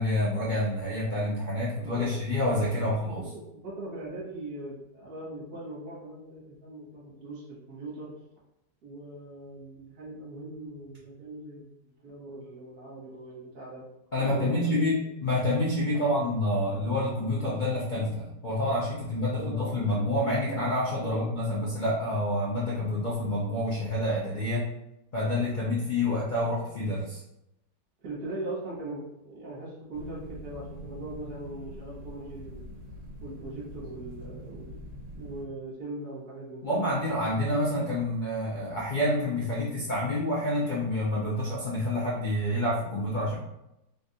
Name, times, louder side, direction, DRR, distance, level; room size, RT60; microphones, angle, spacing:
voice 1, 0.0-3.2 14.1-24.7 25.1-27.2 36.6-43.3, left 1 dB, 60° left, -6 dB, 0.5 m, -28 dB
voice 2, 1.8-2.2 2.8-8.1 8.8-11.7 12.0-13.9 14.2-15.1 15.9-16.1 19.3-19.7 20.9-21.2 28.0-32.6 33.2-34.8 35.1-36.7, right 2 dB, 60° right, -6 dB, 1.7 m, -40 dB
sound 1, 29.9-35.4, equal, 80° right, 1.5 m, -43 dB
3.8 x 2.5 x 2.8 m, 0.85 s
omnidirectional pair, 1.9 m